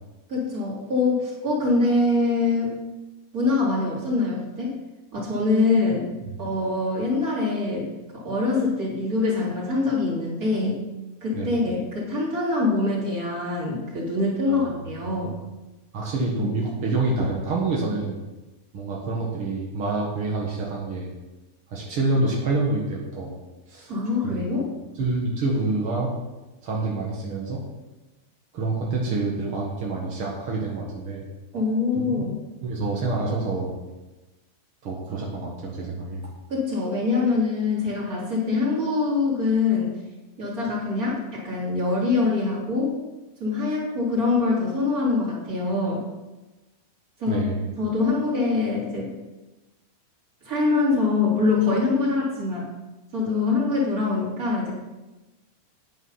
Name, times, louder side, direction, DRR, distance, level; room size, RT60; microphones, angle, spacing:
voice 1, 0.3-2.7 3.3-4.7 5.1-6.0 6.4-7.9 8.2-10.8 11.2-15.3 16.4-16.5 23.9-24.7 31.5-32.4 36.5-39.9 40.4-42.9 43.4-46.0 47.2-47.5 47.8-49.1 50.4-52.7 53.1-54.8, left 3 dB, 20° right, -5 dB, 3.2 m, -24 dB
voice 2, 15.9-18.2 18.7-21.1 21.7-23.3 23.7-23.9 24.2-24.5 25.0-26.1 26.6-27.6 28.5-31.2 31.9-32.0 32.6-33.7 34.8-36.3 47.3-47.7, right 3 dB, 65° right, -3 dB, 1.3 m, -27 dB
10.5 x 9.1 x 5.8 m, 1.1 s
omnidirectional pair, 5.1 m